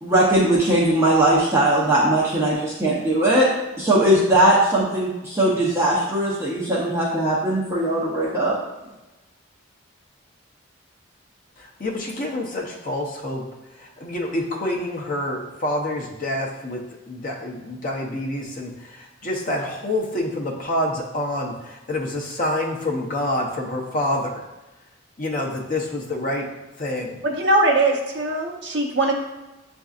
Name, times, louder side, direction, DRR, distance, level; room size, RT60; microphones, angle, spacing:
voice 1, 0.0-3.5 3.8-8.6, right 1 dB, 15° right, -8 dB, 0.7 m, -19 dB
voice 2, 11.8-13.4 14.0-16.8 17.1-18.7 19.2-24.3 25.2-26.4 26.8-27.2, left 1 dB, 40° left, -1 dB, 0.7 m, -27 dB
voice 3, 27.2-29.1, right 2 dB, 55° right, 0 dB, 0.7 m, -20 dB
7.9 x 2.6 x 2.4 m, 1.0 s
head